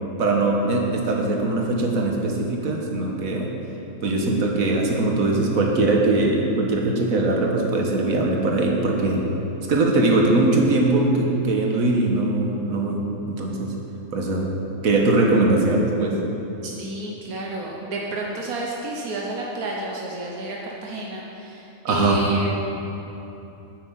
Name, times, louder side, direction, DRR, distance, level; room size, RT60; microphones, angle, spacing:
voice 1, 0.2-3.5 4.0-9.3 9.7-13.7 14.1-14.5 14.8-16.2 21.8-22.2, right 2 dB, 70° right, 0 dB, 1.8 m, -21 dB
voice 2, 16.6-22.5, right 2 dB, 85° right, -2 dB, 1.5 m, -31 dB
9.6 x 8.4 x 7.4 m, 3.0 s
omnidirectional pair, 1.5 m